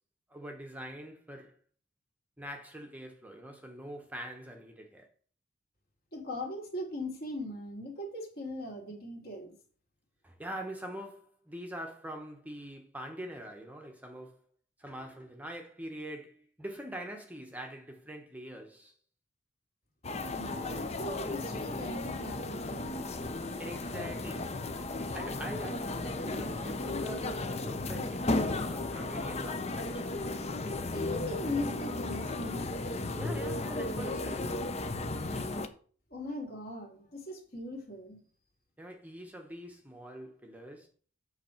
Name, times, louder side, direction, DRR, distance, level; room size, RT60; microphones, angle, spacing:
voice 1, 0.3-1.6 2.4-5.1 10.2-14.4 14.8-18.9 23.6-30.1 33.2-34.6 38.8-40.9, right 1 dB, 10° right, 0.9 m, -44 dB
voice 2, 6.1-9.5 20.3-23.0 30.9-32.7 36.1-38.2, left 1 dB, 50° left, 2.5 m, -39 dB
sound 1, 20.0-35.7, left 2 dB, 30° left, 0.7 m, -35 dB
8.1 x 6.3 x 4.4 m
head